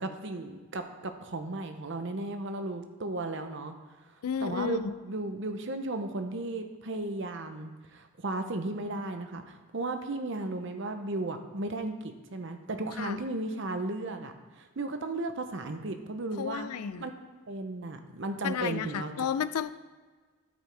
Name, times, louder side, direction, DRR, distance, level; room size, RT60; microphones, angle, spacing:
voice 1, 0.0-3.7 4.4-16.7 17.0-17.1 17.5-19.3, right 2 dB, 55° right, 7 dB, 0.8 m, -35 dB
voice 2, 4.2-4.8 13.0-13.2 16.4-17.1 18.4-19.7, left 8 dB, 90° left, 14 dB, 0.4 m, -32 dB
13.0 x 5.3 x 3.4 m, 1.4 s
head